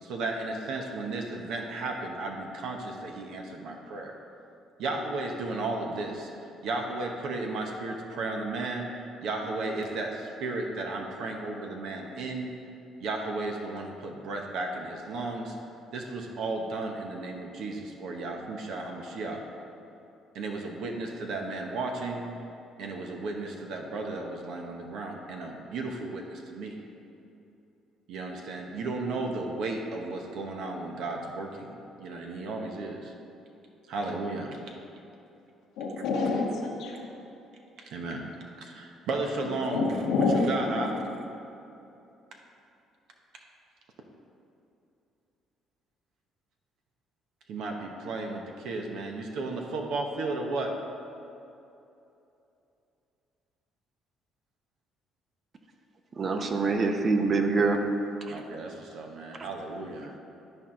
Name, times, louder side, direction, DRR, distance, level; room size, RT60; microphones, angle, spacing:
voice 1, 0.0-4.1 4.8-6.3 6.6-8.9 9.2-12.5 13.0-15.6 15.9-19.4 20.3-22.3 22.8-26.8 28.1-33.1 33.9-34.8 36.0-36.1 37.8-38.2 38.6-40.9 47.5-50.7 58.3-60.1, right 2 dB, 75° right, 2 dB, 0.9 m, -34 dB
voice 2, 35.8-37.1 39.6-40.4 40.7-40.8, left 4 dB, 80° left, -3 dB, 1.0 m, -27 dB
voice 3, 56.2-57.8 58.3-58.4, right 3 dB, 45° right, 5 dB, 0.8 m, -25 dB
12.0 x 4.5 x 3.7 m, 2.8 s
supercardioid pair, 75°, 0 cm